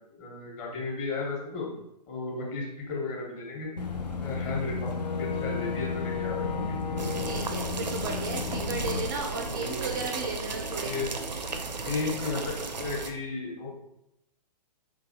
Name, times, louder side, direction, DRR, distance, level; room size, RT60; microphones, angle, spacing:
voice 1, 0.2-1.7 2.1-3.7 4.2-7.5 9.4-9.9 10.8-11.1 11.8-13.7, left 3 dB, 25° left, -2 dB, 1.1 m, -34 dB
Boat Water vehicle / Engine, 3.8-9.1, left 5 dB, 75° left, 0.6 m, -32 dB
sound 1, 7.0-13.1, right 3 dB, 85° right, 0.5 m, -35 dB
voice 2, 7.2-11.0, right 3 dB, 30° right, 2 dB, 0.4 m, -35 dB
4.0 x 3.2 x 2.7 m, 0.84 s
figure-of-eight pair, 120°, 21 cm